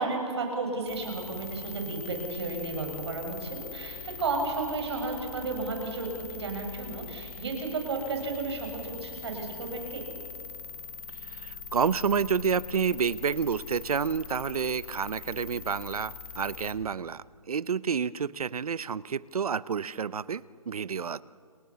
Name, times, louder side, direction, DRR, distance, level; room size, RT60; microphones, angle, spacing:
voice 1, 0.0-10.0, right 3 dB, 45° right, 3 dB, 6.5 m, -33 dB
sound 1, 0.9-16.7, left 6 dB, 5° left, 1.1 m, -42 dB
voice 2, 11.3-21.2, right 6 dB, 75° right, 18 dB, 0.9 m, -29 dB
30.0 x 27.5 x 7.0 m, 2.2 s
hypercardioid pair, 175°, 19 cm